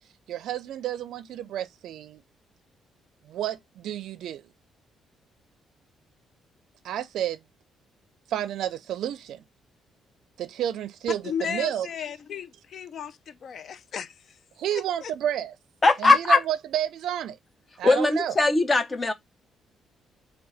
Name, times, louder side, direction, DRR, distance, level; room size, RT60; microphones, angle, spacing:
voice 1, 0.3-2.2 3.3-4.4 6.8-7.4 8.3-9.4 10.4-11.9 14.6-15.5 16.0-17.4 17.8-18.3, right 10 dB, 75° right, 0.4 m, -30 dB
voice 2, 11.2-14.4 14.7-15.1, left 8 dB, 60° left, 0.4 m, -35 dB
voice 3, 15.8-16.4 17.8-19.1, left 3 dB, 30° left, 0.8 m, -20 dB
3.6 x 2.2 x 4.1 m
cardioid pair, 90°, 0 cm